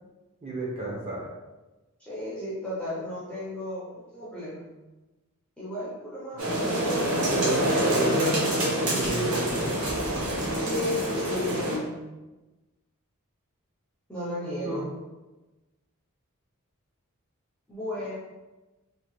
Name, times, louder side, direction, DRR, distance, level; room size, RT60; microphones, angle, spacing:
voice 1, 0.4-1.3 7.0-7.6 7.9-9.7 14.6-14.8, right 1 dB, 30° right, -6 dB, 0.9 m, -31 dB
voice 2, 2.0-4.7 5.6-7.1 7.6-8.2 10.5-11.9 14.1-14.9 17.7-18.1, left 1 dB, 5° left, -9 dB, 0.7 m, -34 dB
sound 1, 6.4-11.7, right 1 dB, 75° right, 1.1 m, -26 dB
2.8 x 2.8 x 3.1 m, 1.1 s
head